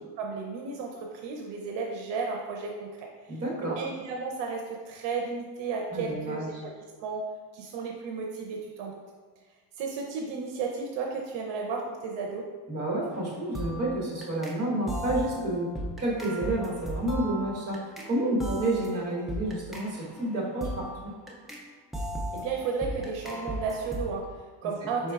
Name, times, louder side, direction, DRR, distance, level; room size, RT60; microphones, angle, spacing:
voice 1, 0.2-3.4 3.8-6.7 7.0-7.3 7.5-9.0 9.8-12.5 22.3-25.1, right 5 dB, 80° right, 0 dB, 0.7 m, -33 dB
voice 2, 3.3-3.8 5.9-6.6 12.7-15.7 16.0-21.1 25.0-25.1, right 1 dB, 35° right, -5 dB, 1.4 m, -30 dB
sound 1, 13.1-13.3 13.5-14.6 14.9-18.1 18.4-21.6 21.9-24.1, right 1 dB, ahead, 0.3 m, -36 dB
5.2 x 4.2 x 2.4 m, 1.4 s
cardioid pair, 155°, 43 cm